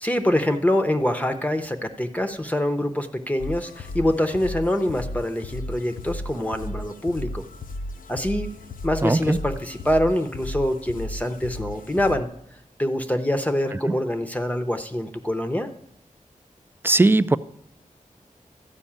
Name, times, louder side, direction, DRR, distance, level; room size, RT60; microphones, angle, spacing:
voice 1, 0.0-7.4 8.1-8.5 8.8-12.3 12.8-15.7, left 1 dB, 10° left, 0.7 m, -25 dB
sound 1, 3.4-12.2, left 1 dB, 80° left, 0.6 m, -35 dB
voice 2, 9.0-9.4 16.8-17.4, right 2 dB, 15° right, 0.3 m, -18 dB
13.0 x 5.3 x 8.6 m
wide cardioid pair, 100°, 14 cm